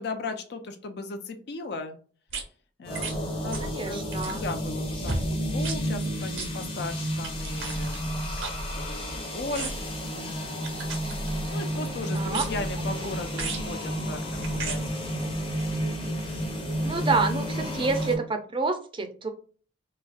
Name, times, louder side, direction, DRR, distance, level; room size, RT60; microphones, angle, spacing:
voice 1, 0.0-2.0 2.8-8.2 8.8-14.8, left 3 dB, 55° left, 7 dB, 0.4 m, -37 dB
sound 1, 2.3-2.4 2.9-3.2 3.5-3.7 4.1-4.5 5.0-5.2 5.6-5.8 6.3-6.5 7.2-9.1 9.5-9.9 10.6-11.6 12.3-12.7 13.3-13.7 14.4-14.8 15.6-15.7, right 3 dB, 85° right, 0.9 m, -34 dB
sound 2, 2.8-18.2, equal, 30° left, 0.8 m, -31 dB
voice 2, 3.6-4.4 12.1-12.4 16.8-19.3, right 4 dB, 25° right, 6 dB, 0.5 m, -28 dB
4.0 x 2.3 x 2.4 m, 0.41 s
head